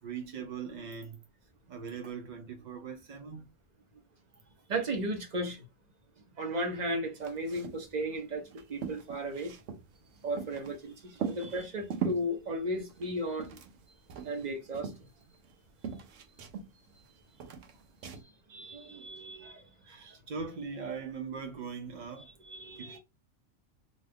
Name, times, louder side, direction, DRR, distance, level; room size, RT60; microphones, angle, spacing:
voice 1, 0.0-1.2 1.7-3.5 11.2-11.3 18.7-19.1 19.8-22.3 22.8-23.0, right 6 dB, 60° right, 0.4 m, -41 dB
voice 2, 4.7-5.6 6.4-9.5 10.2-13.6 14.2-14.9 18.5-19.7 22.2-23.0, right 1 dB, 40° right, 0.8 m, -35 dB
sound 1, 7.2-7.9 8.1-8.2 8.5-10.8 11.2-12.3 12.9-13.8 14.1-15.6 15.8-17.1 17.4-18.2, right 6 dB, 75° right, 0.9 m, -39 dB
2.6 x 2.4 x 3.3 m
omnidirectional pair, 1.3 m